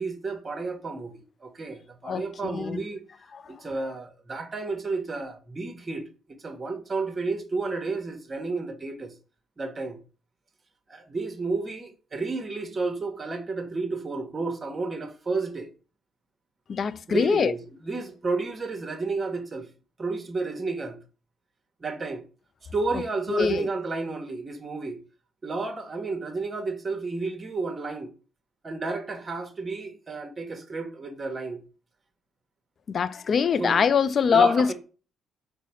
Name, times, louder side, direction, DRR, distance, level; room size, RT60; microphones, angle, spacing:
voice 1, 0.0-3.0 3.5-9.1 9.6-10.0 10.9-15.7 17.1-19.7 20.0-21.0 21.8-22.2 22.7-25.0 25.4-28.1 28.6-31.6 33.6-33.8 34.3-34.7, right 3 dB, 35° right, 0.9 m, -31 dB
voice 2, 2.1-2.8 3.3-3.4 16.7-17.5 23.3-23.7 32.9-34.7, left 6 dB, 50° left, 0.3 m, -23 dB
4.7 x 2.1 x 4.3 m
hypercardioid pair, 55°, 0 cm